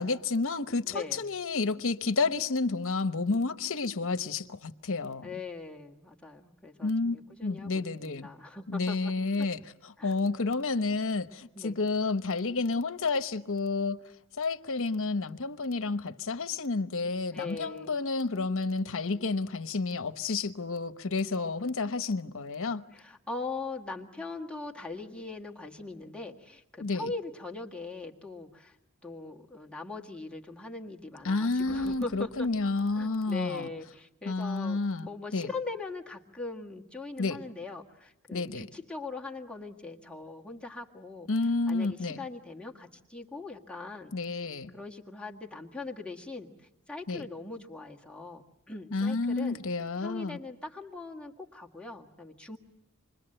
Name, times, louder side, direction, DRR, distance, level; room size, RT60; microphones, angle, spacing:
voice 1, 0.0-5.4 6.8-7.2 7.4-8.3 8.7-14.0 14.4-22.8 26.8-27.1 31.2-33.7 34.2-35.5 37.2-37.4 38.3-38.7 41.3-42.2 44.1-44.7 47.1-47.3 48.9-50.4, left 3 dB, 65° left, 1.0 m, -30 dB
voice 2, 0.9-1.2 5.2-9.1 10.0-10.2 11.5-11.8 17.3-17.9 22.9-28.8 29.0-32.5 32.9-41.3 41.7-44.1 44.7-46.5 46.9-49.6 50.0-52.6, left 3 dB, 5° left, 1.7 m, -41 dB
Thunder, 31.3-33.6, left 1 dB, 25° right, 3.6 m, -57 dB
27.5 x 22.0 x 7.8 m
head